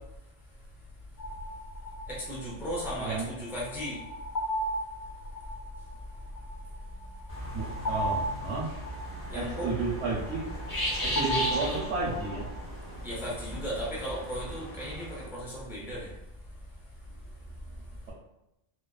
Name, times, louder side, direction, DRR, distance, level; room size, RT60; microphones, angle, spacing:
sound 1, 1.2-12.5, right 1 dB, 60° left, 0.5 m, -36 dB
voice 1, 2.1-4.0 9.3-9.7 13.0-16.1, equal, 5° right, -6 dB, 0.3 m, -36 dB
sound 2, 7.3-15.2, equal, 20° left, 1.0 m, -37 dB
voice 2, 7.5-8.7 9.3-10.4 11.0-12.5, right 3 dB, 75° right, -5 dB, 0.8 m, -32 dB
2.4 x 2.3 x 2.2 m, 0.89 s
omnidirectional pair, 1.2 m